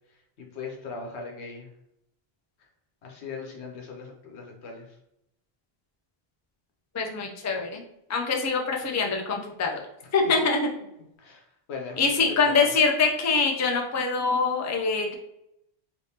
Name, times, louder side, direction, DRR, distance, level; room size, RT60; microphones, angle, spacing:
voice 1, 0.4-1.7 3.0-5.0 10.4-10.5 11.2-11.4 11.7-12.7, left 4 dB, 90° left, 2 dB, 1.1 m, -39 dB
voice 2, 6.9-7.8 8.1-9.8 10.1-10.6 12.0-15.1, left 4 dB, 25° left, 1 dB, 0.3 m, -24 dB
3.3 x 3.1 x 2.8 m, 0.82 s
omnidirectional pair, 1.1 m